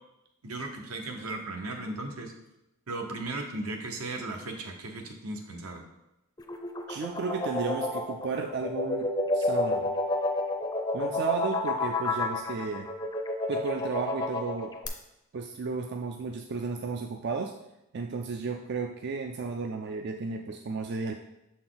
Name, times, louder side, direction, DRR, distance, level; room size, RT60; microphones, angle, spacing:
voice 1, 0.4-2.3 2.9-5.8, right 2 dB, 80° right, 3 dB, 1.0 m, -36 dB
sound 1, 6.4-14.9, left 2 dB, 20° left, 0.5 m, -30 dB
voice 2, 6.9-9.9 10.9-12.9 13.5-14.7 15.3-17.5 17.9-21.1, right 4 dB, 50° right, 3 dB, 0.3 m, -33 dB
6.6 x 4.3 x 3.9 m, 0.90 s
head